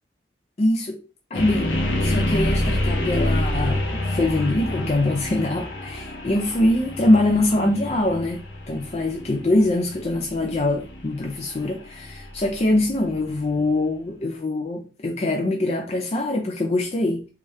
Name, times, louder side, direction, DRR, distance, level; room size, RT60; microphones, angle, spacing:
voice 1, 0.6-1.0 1.3-17.3, left 1 dB, 35° left, 0.4 m, -23 dB
sound 1, 1.3-13.3, left 1 dB, 75° left, 1.0 m, -27 dB
3.5 x 2.9 x 3.2 m
head